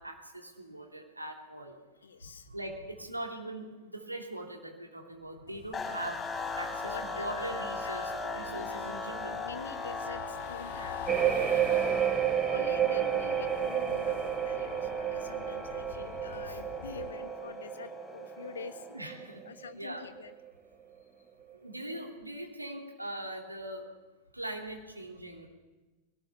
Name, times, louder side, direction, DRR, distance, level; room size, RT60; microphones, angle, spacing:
voice 1, 0.0-1.7 2.5-6.3 6.6-9.4 16.5-16.6 18.9-19.4 19.8-20.0 21.6-23.9 24.3-25.5, right 1 dB, 85° right, 1 dB, 3.0 m, -41 dB
voice 2, 2.0-2.5 6.8-9.1 9.4-12.0 12.5-18.9 19.4-20.3, left 6 dB, 70° left, 10 dB, 1.4 m, -46 dB
sound 1, 5.5-17.1, left 10 dB, 55° left, 0.8 m, -48 dB
sound 2, 5.7-19.1, left 3 dB, 15° left, 6.3 m, -39 dB
sound 3, 11.1-19.7 20.0-20.5, right 10 dB, 20° right, 1.1 m, -31 dB
21.5 x 17.5 x 7.0 m, 1.1 s
figure-of-eight pair, 90°, 0 cm